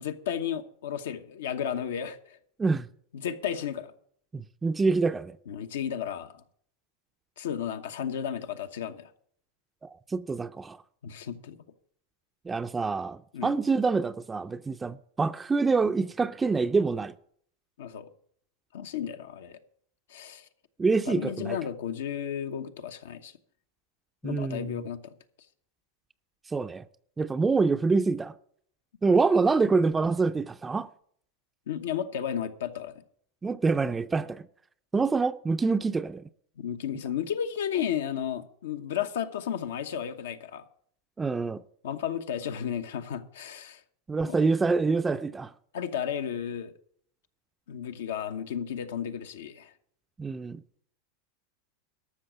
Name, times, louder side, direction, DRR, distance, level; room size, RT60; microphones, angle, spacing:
voice 1, 0.0-2.4 3.1-3.9 5.5-6.3 7.4-9.1 11.0-11.6 13.3-13.6 17.8-18.1 18.7-19.6 20.1-20.5 21.1-23.3 24.2-25.1 31.7-33.0 36.6-40.6 41.8-43.8 44.2-44.5 45.7-46.7 47.7-49.7, left 9 dB, 85° left, 1.0 m, -33 dB
voice 2, 4.3-5.4 9.8-10.8 12.5-17.1 20.8-21.6 24.2-24.8 26.5-26.8 27.2-28.3 29.0-30.9 33.4-34.4 34.9-36.2 41.2-41.6 44.1-45.5 50.2-50.6, right 4 dB, 15° right, 0.4 m, -26 dB
13.0 x 6.2 x 7.7 m
hypercardioid pair, 120°, 0 cm